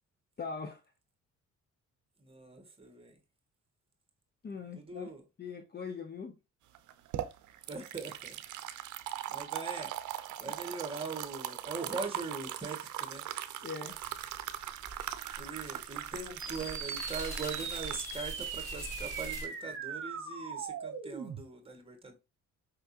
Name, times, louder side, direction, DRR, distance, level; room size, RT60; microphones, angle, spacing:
voice 1, 0.4-0.8 4.4-5.1 5.4-6.4 13.6-14.0, left 5 dB, 35° left, 0.7 m, -41 dB
voice 2, 2.2-3.2 4.7-5.2 7.7-8.3 9.3-9.9 10.4-13.2 15.4-22.2, right 4 dB, 20° right, 1.6 m, -41 dB
sound 1, 6.7-19.7, right 12 dB, 75° right, 0.6 m, -40 dB
sound 2, 13.9-19.5, right 1 dB, 10° left, 2.4 m, -46 dB
sound 3, 16.4-21.4, right 6 dB, 45° right, 1.3 m, -40 dB
5.1 x 3.3 x 2.8 m
cardioid pair, 90°, 30 cm